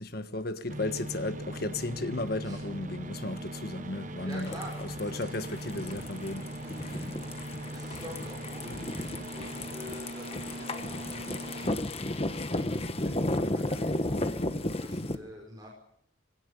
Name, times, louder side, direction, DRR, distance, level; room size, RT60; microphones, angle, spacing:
voice 1, 0.0-6.5 6.8-7.0, left 2 dB, 50° left, 1.5 m, -35 dB
sound 1, 0.7-11.7, right 1 dB, 40° right, 1.2 m, -40 dB
voice 2, 4.2-5.3 6.9-15.7, equal, 20° right, 5.0 m, -47 dB
sound 2, 4.3-15.1, left 1 dB, 30° left, 1.3 m, -34 dB
20.0 x 17.0 x 9.9 m
head